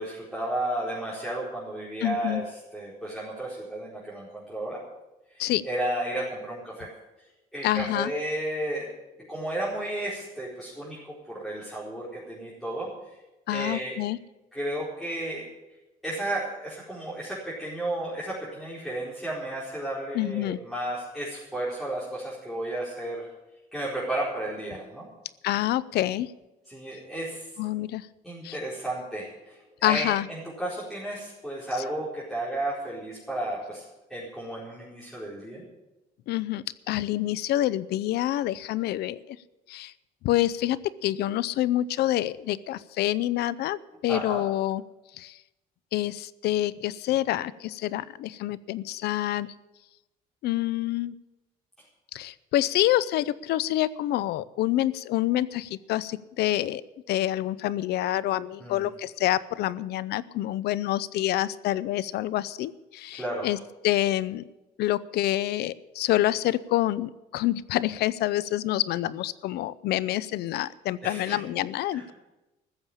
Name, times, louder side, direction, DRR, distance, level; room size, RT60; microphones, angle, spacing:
voice 1, 0.0-2.4 2.7-4.8 5.3-6.9 7.5-8.9 9.2-13.2 13.5-14.0 14.5-15.5 16.0-23.3 23.7-25.1 26.7-27.5 28.2-33.8 34.1-35.6 44.1-44.4 58.6-58.8 63.1-63.5 71.0-71.4 71.9-72.1, right 1 dB, ahead, -8 dB, 4.5 m, -33 dB
voice 2, 2.0-2.4 5.4-5.6 7.6-8.1 13.5-14.2 20.1-20.6 25.4-26.3 27.6-28.1 28.4-28.6 29.8-30.3 36.3-39.4 39.7-39.9 40.2-44.8 45.2-45.4 45.9-49.5 50.4-51.1 52.1-56.8 57.1-63.6 63.8-64.4 64.8-72.1, left 14 dB, 75° left, 19 dB, 0.6 m, -27 dB
14.5 x 7.3 x 9.9 m, 1.0 s
cardioid pair, 110°, 17 cm